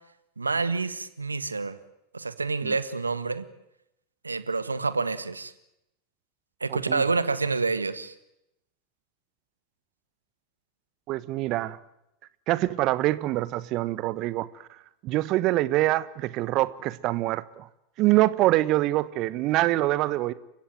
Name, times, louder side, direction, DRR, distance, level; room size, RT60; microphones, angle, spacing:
voice 1, 0.4-1.8 2.1-3.4 4.2-5.5 6.6-8.1, right 4 dB, 85° right, 14 dB, 1.6 m, -28 dB
voice 2, 6.7-7.0 11.1-11.8 12.5-14.5 15.0-17.7 18.0-20.3, right 17 dB, 45° right, 18 dB, 1.1 m, -25 dB
30.0 x 16.0 x 9.0 m, 0.84 s
figure-of-eight pair, 90°, 0 cm